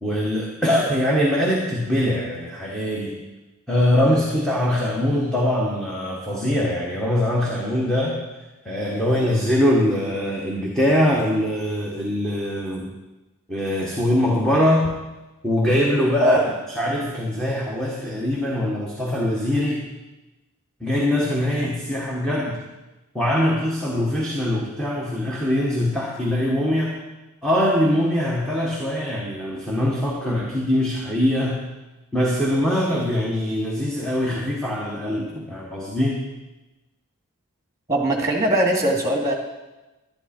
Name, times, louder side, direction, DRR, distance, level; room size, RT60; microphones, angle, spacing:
voice 1, 0.0-3.2 3.7-8.2 8.6-12.9 13.5-14.9 15.4-16.4 16.7-19.9 20.8-22.6 23.1-27.0 27.4-31.6 32.1-36.3, left 1 dB, 5° left, -4 dB, 1.4 m, -22 dB
voice 2, 37.9-39.3, right 1 dB, 15° right, 1 dB, 2.1 m, -20 dB
11.5 x 11.0 x 4.4 m, 1.1 s
head